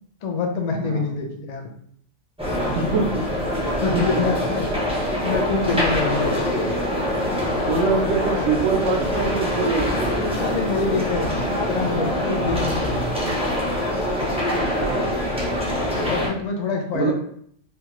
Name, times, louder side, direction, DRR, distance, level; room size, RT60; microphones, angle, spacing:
voice 1, 0.2-1.7 3.7-4.7 5.0-6.5 10.2-13.1 16.0-17.1, left 4 dB, 70° left, 2 dB, 0.4 m, -26 dB
sound 1, 2.4-16.3, left 1 dB, 10° right, 0.4 m, -24 dB
voice 2, 2.6-3.2 3.9-4.2 7.7-10.1 14.8-15.2 16.9-17.1, right 4 dB, 85° right, 0 dB, 1.0 m, -24 dB
3.2 x 2.3 x 2.9 m, 0.66 s
omnidirectional pair, 1.3 m